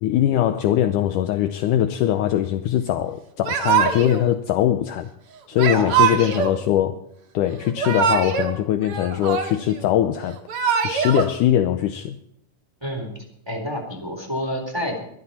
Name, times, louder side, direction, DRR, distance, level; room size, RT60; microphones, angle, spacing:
voice 1, 0.0-5.1 5.5-7.0 7.3-10.4 10.8-12.2, left 11 dB, 75° left, 2.0 m, -21 dB
Yell / Crying sobbing, 3.4-4.2 5.6-6.6 7.6-8.5 8.8-9.8 10.3-11.3, right 7 dB, 50° right, 2.0 m, -22 dB
voice 2, 5.7-6.5 12.8-13.1 13.5-15.0, equal, 5° right, 3.4 m, -29 dB
22.0 x 13.0 x 4.3 m
omnidirectional pair, 4.2 m